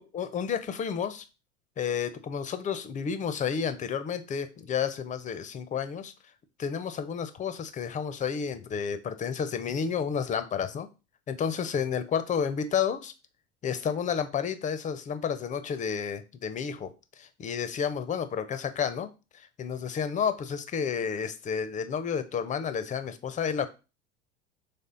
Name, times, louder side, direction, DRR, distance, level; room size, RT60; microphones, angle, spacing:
voice 1, 0.1-1.2 1.8-6.1 6.6-10.9 11.3-13.1 13.6-19.1 19.3-23.7, left 7 dB, 20° left, 11 dB, 0.5 m, -31 dB
4.2 x 3.3 x 3.7 m, 0.30 s
hypercardioid pair, 85°, 35 cm